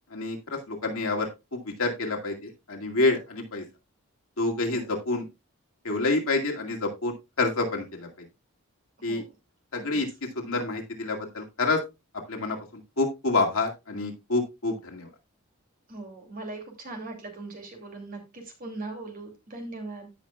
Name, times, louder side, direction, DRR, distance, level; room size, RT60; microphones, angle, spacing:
voice 1, 0.1-1.3 1.8-2.4 2.7-3.6 4.4-5.2 5.8-8.1 9.0-9.2 9.7-10.1 10.4-11.8 12.3-12.6 13.0-15.1, left 3 dB, 75° left, 1 dB, 2.2 m, -27 dB
voice 2, 15.9-20.1, right 2 dB, 40° right, 2 dB, 2.7 m, -40 dB
16.5 x 5.7 x 2.3 m, 0.24 s
head